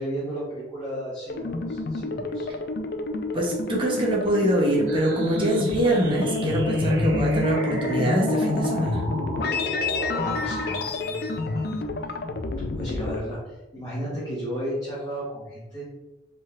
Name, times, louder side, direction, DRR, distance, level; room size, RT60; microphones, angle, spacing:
voice 1, 0.0-2.5 10.1-11.6 12.7-15.9, equal, 20° left, -9 dB, 1.3 m, -34 dB
sound 1, 1.3-13.2, left 3 dB, 60° left, 0.4 m, -28 dB
voice 2, 3.3-9.0, right 1 dB, 30° right, -2 dB, 0.9 m, -24 dB
sound 2, 4.9-10.9, right 1 dB, 85° right, 0.8 m, -34 dB
5.0 x 3.7 x 2.5 m, 1.0 s
head